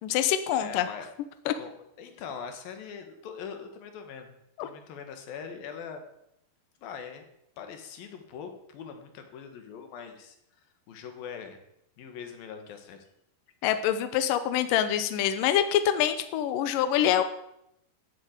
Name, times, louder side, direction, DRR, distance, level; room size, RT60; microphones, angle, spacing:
voice 1, 0.0-0.9 1.5-1.6 4.6-4.7 13.6-17.2, left 10 dB, 80° left, 10 dB, 2.0 m, -25 dB
voice 2, 0.6-1.1 1.5-1.7 2.0-4.3 4.6-6.0 6.8-7.2 7.6-10.4 10.9-11.6 12.0-13.0, left 6 dB, 65° left, 6 dB, 3.1 m, -42 dB
14.0 x 7.7 x 8.2 m, 0.80 s
omnidirectional pair, 4.9 m